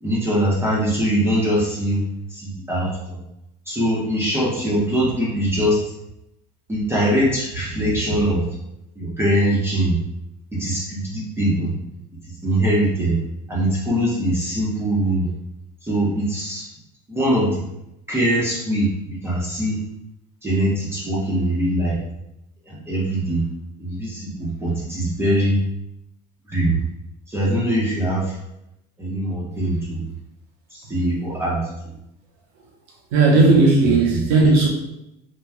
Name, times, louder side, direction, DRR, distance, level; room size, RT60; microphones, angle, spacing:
voice 1, 0.0-2.0 2.3-3.2 3.7-5.8 6.7-8.4 9.0-10.0 10.6-11.7 12.4-13.2 13.5-15.3 15.8-16.7 17.1-17.6 18.1-19.8 20.4-22.0 22.7-23.4 23.8-25.6 26.5-26.8 27.3-28.4 29.0-30.1 30.7-31.9 33.6-34.2, right 1 dB, 10° right, -6 dB, 0.8 m, -22 dB
voice 2, 33.1-34.7, right 3 dB, 80° right, 0 dB, 0.8 m, -15 dB
3.0 x 2.3 x 2.3 m, 0.85 s
supercardioid pair, 105°, 21 cm